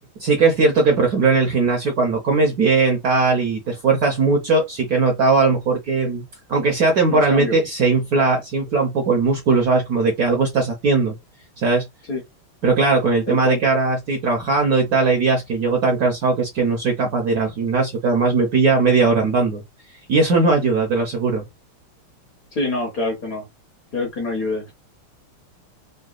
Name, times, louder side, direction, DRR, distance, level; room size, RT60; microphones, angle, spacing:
voice 1, 0.2-11.2 11.6-11.9 12.6-19.6 20.1-21.4, right 4 dB, 65° right, 0.9 m, -19 dB
voice 2, 7.1-7.6 12.1-12.2 13.3-13.6 22.5-23.4 23.9-24.7, left 2 dB, 55° left, 1.1 m, -26 dB
3.9 x 2.1 x 2.4 m
omnidirectional pair, 2.3 m